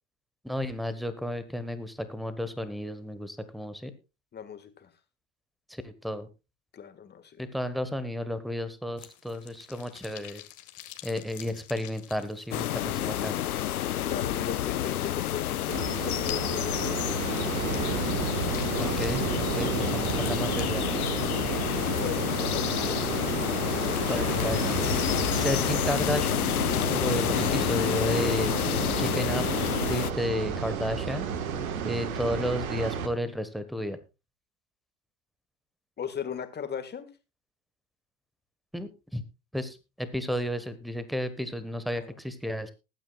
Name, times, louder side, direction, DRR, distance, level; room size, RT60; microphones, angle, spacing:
voice 1, 0.4-3.9 5.7-6.3 7.4-10.4 11.0-13.4 18.8-20.8 21.1-21.3 24.1-24.8 25.3-26.5 26.9-28.6 29.0-29.4 29.8-31.3 31.8-34.0 38.7-39.2 39.5-42.7, left 1 dB, ahead, 13 dB, 1.2 m, -32 dB
voice 2, 4.3-4.9 6.7-7.4 14.1-17.3 21.7-23.0 36.0-37.1 41.9-42.1, left 7 dB, 25° left, 10 dB, 1.7 m, -38 dB
sound 1, 9.0-27.0, left 13 dB, 40° left, 1.7 m, -49 dB
Ambiance Natural Forest Birds Wind Loop Stereo, 12.5-30.1, left 12 dB, 90° left, 0.6 m, -29 dB
sound 2, 15.7-33.1, right 6 dB, 75° right, 1.5 m, -32 dB
20.0 x 9.0 x 2.3 m, 0.27 s
hypercardioid pair, 90°, 43 cm